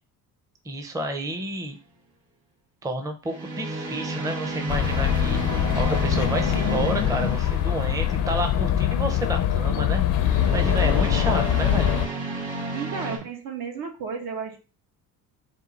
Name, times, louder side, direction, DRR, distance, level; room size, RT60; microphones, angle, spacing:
voice 1, 0.6-1.8 2.8-10.0 10.5-11.9, right 1 dB, 10° right, 5 dB, 0.5 m, -30 dB
sound 1, 1.3-1.6 3.3-8.3 10.1-13.2, right 2 dB, 55° right, 2.0 m, -32 dB
sound 2, 4.7-12.1, left 10 dB, 55° left, 0.5 m, -23 dB
voice 2, 12.7-14.6, right 5 dB, 75° right, 3 dB, 1.2 m, -33 dB
4.3 x 2.3 x 3.9 m, 0.34 s
cardioid pair, 115°, 36 cm